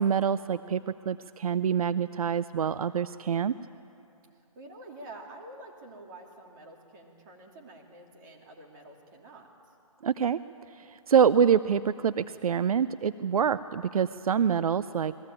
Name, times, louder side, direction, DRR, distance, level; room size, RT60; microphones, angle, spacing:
voice 1, 0.0-3.5 10.0-10.4 10.7-15.1, right 7 dB, 80° right, 14 dB, 0.5 m, -26 dB
voice 2, 4.5-9.8, right 2 dB, 35° right, 0 dB, 3.0 m, -48 dB
21.0 x 15.5 x 9.0 m, 2.6 s
hypercardioid pair, 155°, 18 cm